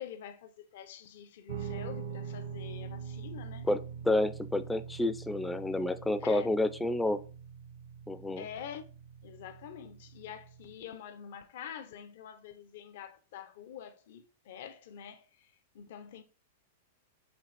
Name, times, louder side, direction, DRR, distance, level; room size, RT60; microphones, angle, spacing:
voice 1, 0.0-3.7 6.2-6.5 8.4-8.8 9.2-16.2, left 9 dB, 65° left, 0.5 m, -46 dB
Guitar, 1.5-10.8, right 7 dB, 75° right, 0.6 m, -44 dB
voice 2, 3.7-7.2 8.1-8.4, left 2 dB, 5° left, 0.3 m, -30 dB
5.8 x 2.4 x 3.2 m
hypercardioid pair, 130°, 0 cm